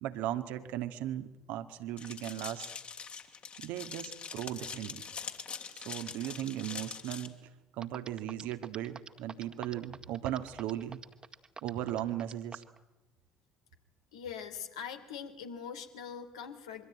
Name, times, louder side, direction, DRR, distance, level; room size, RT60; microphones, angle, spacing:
voice 1, 0.0-2.7 3.6-5.1 5.7-7.3 7.8-11.0 11.6-12.6, right 12 dB, 60° right, 9 dB, 1.8 m, -37 dB
sound 1, 2.0-7.3, left 6 dB, 40° left, 3.1 m, -43 dB
sound 2, 7.5-7.6 7.8-12.8, right 4 dB, 25° right, 2.0 m, -46 dB
voice 2, 14.1-16.9, left 7 dB, 75° left, 6 dB, 3.0 m, -42 dB
25.0 x 24.5 x 9.0 m, 1.0 s
figure-of-eight pair, 55°, 3 cm